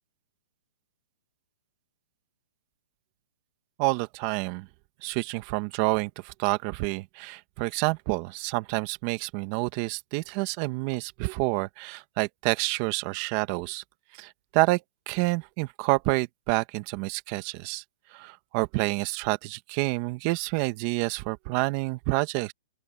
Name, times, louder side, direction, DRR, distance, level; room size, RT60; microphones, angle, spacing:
voice 1, 3.8-4.7 5.0-13.8 14.1-14.8 15.1-17.8 18.1-22.5, right 23 dB, 35° right, 1.5 m, -28 dB
open air
hypercardioid pair, 155°, 0 cm